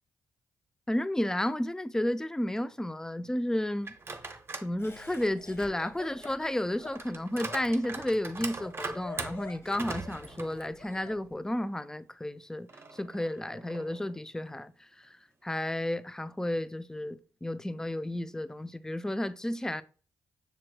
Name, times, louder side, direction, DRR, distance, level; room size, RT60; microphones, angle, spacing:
voice 1, 0.9-3.9 4.6-15.2 15.4-19.8, left 1 dB, 10° left, 0.4 m, -32 dB
sound 1, 3.8-4.7 5.1-11.2 11.6-11.7 12.7-14.2, right 3 dB, 35° right, 0.7 m, -42 dB
Laughter, 4.8-11.2, left 3 dB, 40° left, 1.3 m, -47 dB
6.7 x 3.0 x 2.2 m
supercardioid pair, 50°, 7 cm